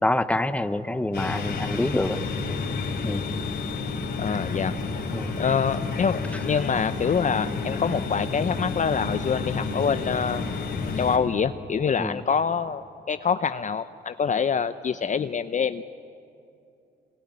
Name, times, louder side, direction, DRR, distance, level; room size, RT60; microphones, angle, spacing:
voice 1, 0.0-2.2 3.0-3.2 5.1-5.3 12.0-12.2, left 1 dB, 5° left, 12 dB, 1.0 m, -26 dB
sound 1, 1.1-11.2, left 4 dB, 55° left, 3.7 m, -30 dB
voice 2, 4.2-4.7 5.4-10.4 11.0-15.8, left 6 dB, 40° left, 12 dB, 0.7 m, -25 dB
25.0 x 21.5 x 9.7 m, 2.7 s
cardioid pair, 90°, 20 cm